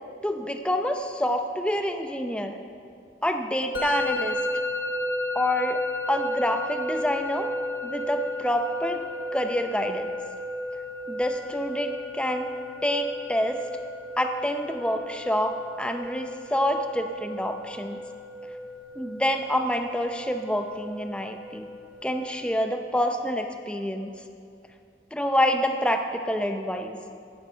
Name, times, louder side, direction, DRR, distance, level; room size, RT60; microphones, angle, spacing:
voice 1, 0.2-2.6 3.2-4.4 5.3-5.8 6.1-7.5 7.8-9.0 9.3-10.1 11.1-12.5 12.8-13.6 14.2-18.0 19.0-21.7 22.0-24.1 25.1-27.0, equal, 5° left, 5 dB, 0.6 m, -27 dB
Musical instrument, 3.7-22.6, left 1 dB, 55° left, 1.2 m, -33 dB
16.0 x 12.0 x 4.6 m, 2.5 s
head